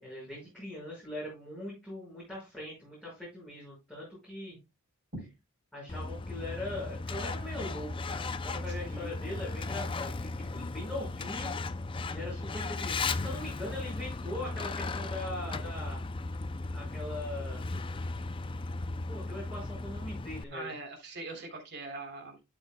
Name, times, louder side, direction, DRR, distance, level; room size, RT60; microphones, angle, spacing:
voice 1, 0.0-4.6 5.7-11.5 12.0-16.0 16.7-17.6 19.1-20.7, left 1 dB, 5° left, -8 dB, 5.6 m, -41 dB
Truck, 5.9-20.4, left 3 dB, 25° left, 0.4 m, -36 dB
voice 2, 8.6-9.1 20.5-22.4, right 2 dB, 50° right, 2 dB, 3.4 m, -42 dB
12.0 x 7.3 x 2.2 m, 0.25 s
head